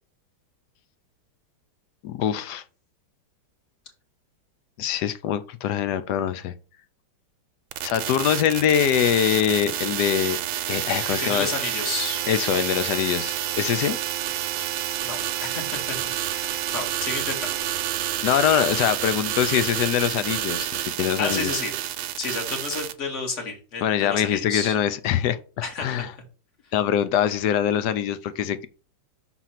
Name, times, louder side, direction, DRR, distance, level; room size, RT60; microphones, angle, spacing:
voice 1, 2.0-2.6 4.8-6.5 7.8-10.4 10.7-11.5 12.3-14.0 18.2-20.7 21.0-21.5 23.8-25.4 25.8-26.1 26.7-28.7, left 9 dB, 75° left, 0.9 m, -23 dB
sound 1, 7.7-22.9, right 12 dB, 80° right, 1.4 m, -29 dB
voice 2, 11.2-12.3 15.0-17.6 18.0-18.1 21.2-21.7 22.2-24.8 25.6-26.0, left 4 dB, 35° left, 1.9 m, -31 dB
6.2 x 4.0 x 5.8 m
omnidirectional pair, 2.3 m